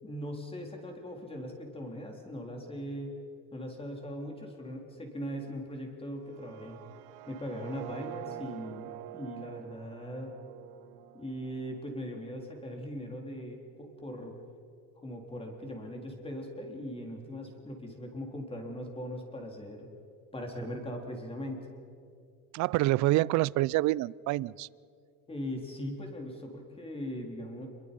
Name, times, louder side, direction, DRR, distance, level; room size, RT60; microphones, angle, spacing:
voice 1, 0.0-3.1 3.5-6.8 7.3-10.3 11.1-14.4 15.0-19.9 20.3-21.7 25.3-27.7, equal, 15° left, 2 dB, 3.8 m, -40 dB
sound 1, 6.2-12.2, right 17 dB, 80° right, 0.8 m, -46 dB
voice 2, 22.5-24.7, right 18 dB, 50° right, 23 dB, 0.4 m, -27 dB
27.0 x 22.5 x 5.4 m, 2.4 s
cardioid pair, 130°, 36 cm